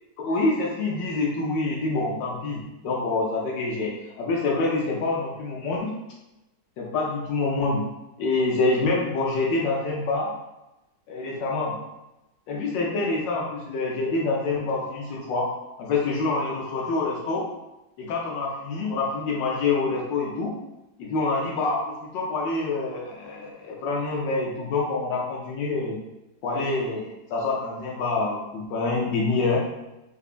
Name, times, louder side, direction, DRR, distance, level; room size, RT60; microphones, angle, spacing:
voice 1, 0.2-5.9 6.8-7.9 8.2-10.3 11.1-11.8 12.5-15.5 15.8-17.5 18.0-20.5 21.0-26.0 26.4-29.6, left 3 dB, 80° left, -2 dB, 1.3 m, -26 dB
3.9 x 2.6 x 2.4 m, 0.96 s
omnidirectional pair, 2.0 m